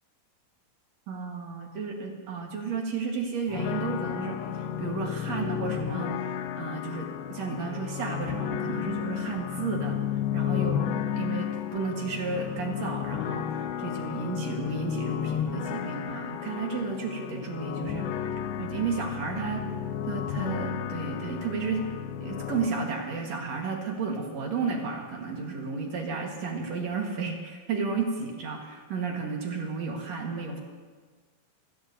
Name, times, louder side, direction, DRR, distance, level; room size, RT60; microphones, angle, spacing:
voice 1, 1.1-10.0 10.3-18.1 18.6-19.7 20.0-21.8 22.2-30.6, right 4 dB, 55° right, 1 dB, 2.2 m, -33 dB
sound 1, 3.5-22.7, left 9 dB, 85° left, 2.8 m, -33 dB
25.5 x 17.0 x 2.7 m, 1.5 s
omnidirectional pair, 4.5 m